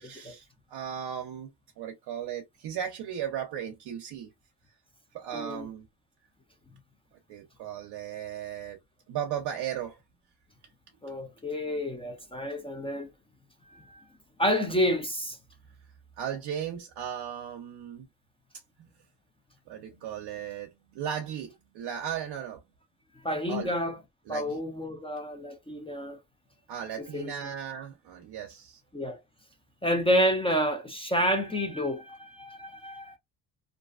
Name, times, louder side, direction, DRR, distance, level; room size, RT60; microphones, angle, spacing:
voice 1, 0.0-4.3 5.1-5.9 7.3-8.8 9.1-10.0 16.2-18.1 18.8-18.9 19.7-22.6 23.5-23.7 24.3-24.6 26.7-28.8, right 9 dB, 65° right, 0.6 m, -36 dB
voice 2, 5.3-5.7 11.0-13.1 13.7-14.0 14.4-15.4 23.2-24.0 24.3-26.2 27.0-27.3 28.9-29.2 29.8-33.2, equal, 15° left, 0.5 m, -29 dB
2.5 x 2.2 x 2.3 m
cardioid pair, 80°, 43 cm